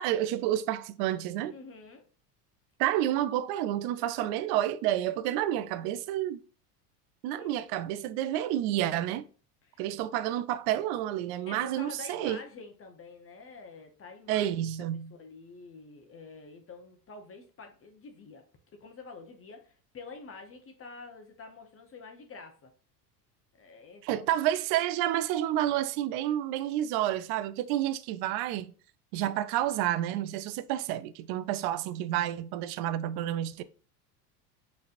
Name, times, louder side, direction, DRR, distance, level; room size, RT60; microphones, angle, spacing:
voice 1, 0.0-1.6 2.8-6.4 7.2-9.2 9.8-12.4 14.3-15.1 24.0-28.7 29.1-33.6, right 12 dB, 55° right, 0.5 m, -30 dB
voice 2, 1.5-2.1 7.3-7.6 9.6-9.8 11.5-14.6 15.2-18.4 18.8-22.7 23.6-24.3, left 4 dB, 30° left, 0.9 m, -47 dB
5.4 x 3.3 x 2.5 m
supercardioid pair, 100°, 47 cm